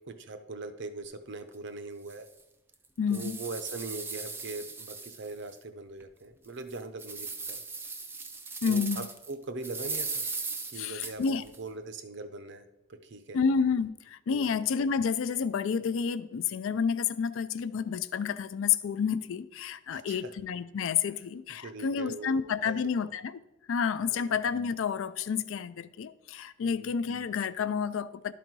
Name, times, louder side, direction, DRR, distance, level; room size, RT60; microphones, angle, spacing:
voice 1, 0.1-2.3 3.1-7.6 8.7-10.3 10.7-12.6 12.9-13.4 14.3-14.6 19.9-20.3 21.6-22.4 22.7-22.8 24.1-24.3 26.6-26.9, right 3 dB, 55° right, 0.6 m, -41 dB
sound 1, 1.5-1.6 2.1-2.2 2.7-5.6 6.0-6.1 6.6-9.3 9.6-11.6, right 4 dB, 10° right, 0.4 m, -38 dB
voice 2, 3.0-3.4 8.6-9.1 10.7-11.4 13.3-23.4 23.7-28.3, left 6 dB, 65° left, 0.3 m, -30 dB
11.5 x 4.0 x 4.6 m
head